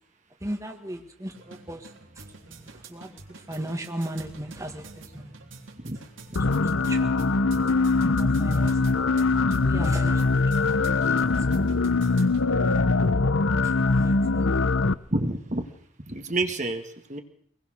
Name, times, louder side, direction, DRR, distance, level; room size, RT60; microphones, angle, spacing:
voice 1, 0.4-1.9 2.1-5.5 6.6-7.1 8.1-8.8 9.5-10.3 10.8-11.6 12.5-13.1 13.6-14.5, right 1 dB, 15° right, 4 dB, 1.7 m, -38 dB
sound 1, 1.3-12.4, right 3 dB, 70° right, 3.5 m, -47 dB
sound 2, 6.4-14.9, left 3 dB, 75° left, 0.8 m, -22 dB
voice 2, 15.1-15.7 16.1-17.2, right 2 dB, 35° right, 5 dB, 1.8 m, -28 dB
24.5 x 20.0 x 6.5 m, 0.65 s
head